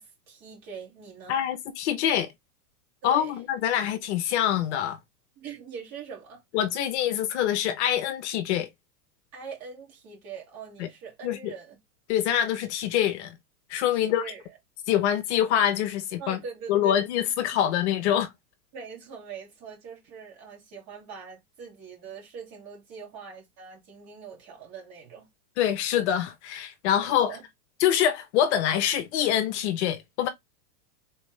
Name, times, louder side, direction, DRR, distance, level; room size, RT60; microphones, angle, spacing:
voice 1, 0.0-1.4 3.0-3.4 5.4-6.4 9.3-11.8 14.0-14.4 16.2-17.0 18.7-25.3 27.0-27.4, right 6 dB, 35° right, 2.3 m, -42 dB
voice 2, 1.3-2.3 3.0-5.0 6.5-8.7 10.8-10.9 11.2-11.5 12.1-13.4 13.7-14.2 14.9-16.4 16.7-18.3 25.6-27.3 27.8-30.3, left 10 dB, 45° left, 0.9 m, -25 dB
4.1 x 3.4 x 3.2 m
supercardioid pair, 145°, 47 cm